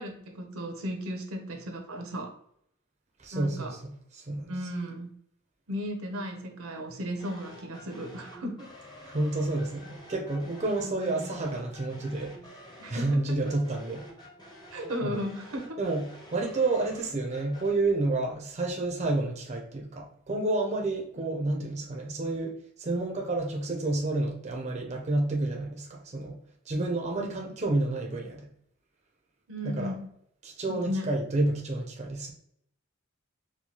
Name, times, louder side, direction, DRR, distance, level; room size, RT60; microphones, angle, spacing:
voice 1, 0.0-2.3 3.3-3.8 4.5-5.1 5.7-8.7 10.8-11.3 12.8-13.5 14.7-15.8 27.1-27.3 29.5-30.1 30.7-31.1, equal, 75° right, 3 dB, 0.7 m, -35 dB
voice 2, 3.2-3.8 4.1-4.6 9.0-12.4 12.9-14.0 15.0-15.2 15.8-16.0 16.3-22.5 22.8-26.4 26.7-28.4 29.6-30.0 30.4-32.3, right 2 dB, 30° right, 0 dB, 0.5 m, -29 dB
sound 1, 7.2-17.7, left 1 dB, 20° left, 0.7 m, -49 dB
4.4 x 2.2 x 2.8 m, 0.69 s
head